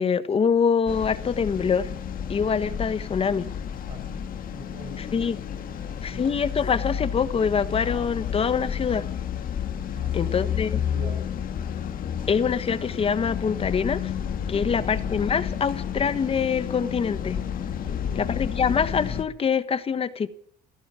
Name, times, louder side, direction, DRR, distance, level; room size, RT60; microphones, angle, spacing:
voice 1, 0.0-1.9 2.3-3.5 5.0-5.4 6.0-9.1 10.1-10.8 12.3-14.1 14.5-17.4 18.2-20.3, left 6 dB, 35° left, 1.3 m, -25 dB
sound 1, 0.9-19.2, left 8 dB, 55° left, 2.1 m, -31 dB
voice 2, 3.9-5.1 5.6-6.2 6.6-6.7 9.9-10.3 10.7-11.2 14.6-15.0 17.8-18.3, right 3 dB, 50° right, 6.8 m, -43 dB
16.0 x 13.0 x 6.3 m
cardioid pair, 110°, 17 cm